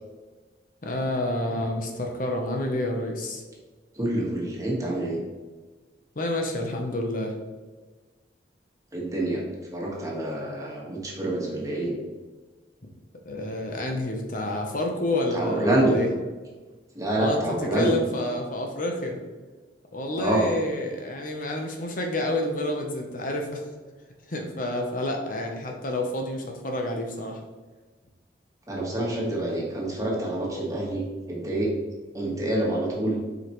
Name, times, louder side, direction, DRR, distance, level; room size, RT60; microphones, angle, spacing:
voice 1, 0.8-3.4 6.2-7.3 13.3-16.1 17.2-19.2 19.9-23.6 24.3-27.4, left 1 dB, 50° left, 2 dB, 0.9 m, -29 dB
voice 2, 3.9-5.2 8.9-9.4 9.7-11.9 15.3-16.0 16.9-18.0 20.2-20.5 28.7-31.7 32.1-33.2, right 1 dB, 20° right, -3 dB, 1.6 m, -26 dB
7.7 x 5.0 x 3.1 m, 1.3 s
head